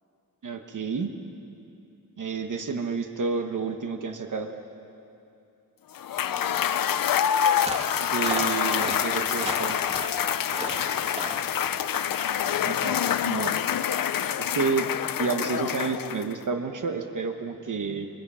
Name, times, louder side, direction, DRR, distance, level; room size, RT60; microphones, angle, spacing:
voice 1, 0.4-1.1 2.2-4.5 8.0-9.8 12.6-13.0 13.2-13.6 14.4-14.9 15.2-18.1, right 5 dB, 60° right, 5 dB, 1.3 m, -30 dB
Cheering / Applause / Crowd, 5.9-16.4, left 9 dB, 70° left, 0.6 m, -26 dB
voice 2, 6.2-7.1, left 1 dB, 15° left, -4 dB, 3.9 m, -49 dB
sound 1, 7.7-7.9 8.2-9.0 9.3-10.2 10.5-10.8 11.2-11.5, right 1 dB, 15° right, 2.2 m, -33 dB
28.0 x 24.5 x 5.7 m, 2.8 s
wide cardioid pair, 160°, 36 cm